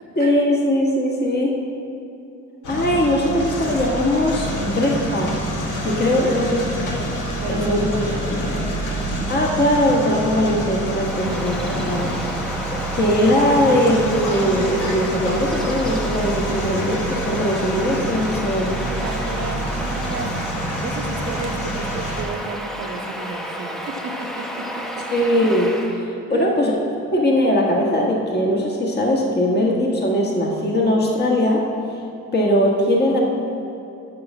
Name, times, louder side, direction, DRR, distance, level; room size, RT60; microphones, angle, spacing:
voice 1, 0.1-1.6 2.7-5.3 5.8-6.6 7.5-7.9 9.3-12.2 12.7-18.8 25.1-26.7 27.1-31.6 32.3-33.2, left 1 dB, 35° left, -1 dB, 1.5 m, -20 dB
sound 1, 2.6-22.2, equal, 85° left, 1.6 m, -27 dB
voice 2, 6.2-6.6 7.4-9.2 16.5-16.6 18.8-20.4 20.8-24.4 26.3-26.6, right 4 dB, 60° right, 6 dB, 0.9 m, -33 dB
Bird vocalization bird call bird song, 10.7-26.0, equal, ahead, 0.8 m, -31 dB
6.7 x 6.6 x 7.2 m, 2.7 s
cardioid pair, 90°, 30 cm